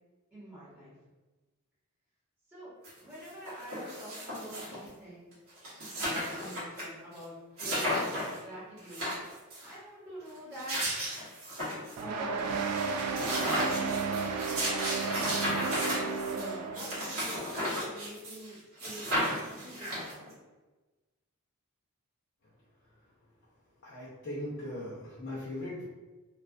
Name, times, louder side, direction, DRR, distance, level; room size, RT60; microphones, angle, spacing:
voice 1, 0.3-0.9 2.5-2.7 3.0-5.2 5.9-10.9 12.0-12.4 13.2-13.9 15.1-20.3, equal, 10° right, -12 dB, 1.3 m, -46 dB
sound 1, 2.8-2.9 3.2-4.9 5.3-5.4 5.6-6.8 7.1-7.2 7.6-8.4 8.8-9.7 10.3-12.0 12.4-12.5 12.7-18.5 18.8-20.3, equal, 70° right, 1.0 m, -34 dB
sound 2, 12.0-17.1, right 5 dB, 90° right, 0.3 m, -33 dB
voice 2, 23.8-25.8, left 1 dB, 55° left, -8 dB, 0.6 m, -39 dB
2.4 x 2.4 x 2.3 m, 1.2 s
head